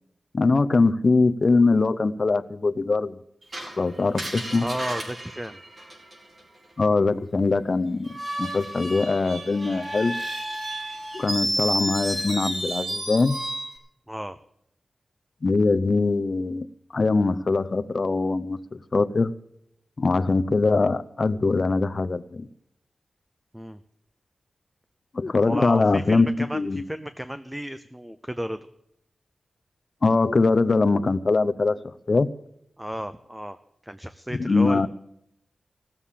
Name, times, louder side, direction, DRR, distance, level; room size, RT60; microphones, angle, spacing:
voice 1, 0.3-3.1 3.8-4.6 6.8-8.1 8.4-10.2 11.1-13.4 15.4-16.7 16.9-19.3 20.0-22.5 25.1-26.8 30.0-31.8 32.1-32.3 34.3-34.9, left 3 dB, 40° left, 0.7 m, -22 dB
Screech, 3.5-6.4 8.0-13.8, right 1 dB, 50° right, 4.8 m, -31 dB
voice 2, 4.6-5.6 14.1-14.4 23.5-23.8 25.4-28.7 32.8-33.6 33.8-34.9, equal, 5° right, 0.5 m, -33 dB
17.5 x 7.4 x 8.3 m
wide cardioid pair, 145°, 0 cm